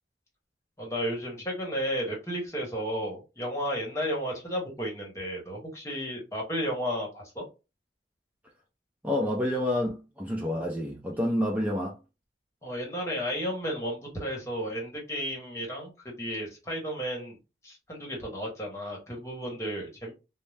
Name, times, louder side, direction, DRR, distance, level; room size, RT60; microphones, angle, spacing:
voice 1, 0.8-7.4 12.6-17.4 17.6-20.1, equal, 15° left, 1.1 m, -33 dB
voice 2, 9.0-12.0, left 1 dB, 10° right, 0.4 m, -28 dB
2.7 x 2.0 x 3.2 m
head